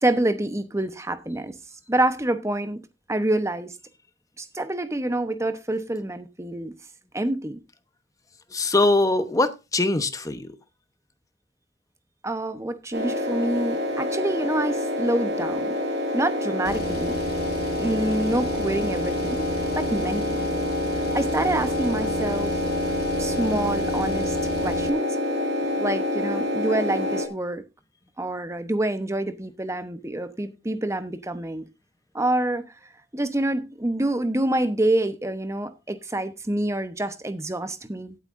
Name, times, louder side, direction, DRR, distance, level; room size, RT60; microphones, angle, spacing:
voice 1, 0.0-1.6 1.9-2.8 3.1-3.8 4.4-6.7 7.1-7.6 12.2-15.7 16.1-17.2 17.8-19.5 19.7-20.5 21.1-22.6 23.2-24.4 24.6-25.2 25.8-27.6 28.2-31.7 32.1-32.7 33.1-38.2, right 1 dB, 15° right, 1.0 m, -27 dB
voice 2, 8.5-10.5, left 2 dB, 20° left, 0.9 m, -22 dB
sound 1, 12.9-27.3, left 1 dB, 65° right, 2.3 m, -27 dB
Car, 16.6-24.9, left 2 dB, 55° left, 1.1 m, -35 dB
17.5 x 8.5 x 2.6 m
head